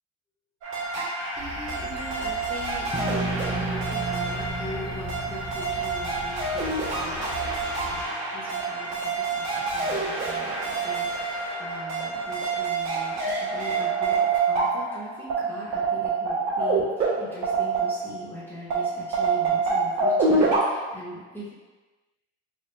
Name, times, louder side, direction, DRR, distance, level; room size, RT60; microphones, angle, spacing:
sound 1, 0.6-18.3 18.7-20.6, right 3 dB, 70° right, 1.4 m, -27 dB
sound 2, 1.3-8.0, left 5 dB, 60° left, 0.5 m, -41 dB
voice 1, 1.4-14.2 14.4-21.5, equal, 5° left, -10 dB, 0.8 m, -41 dB
sound 3, 2.9-7.8, right 3 dB, 15° right, 0.3 m, -35 dB
4.3 x 2.3 x 3.1 m, 1.3 s
cardioid pair, 110°, 31 cm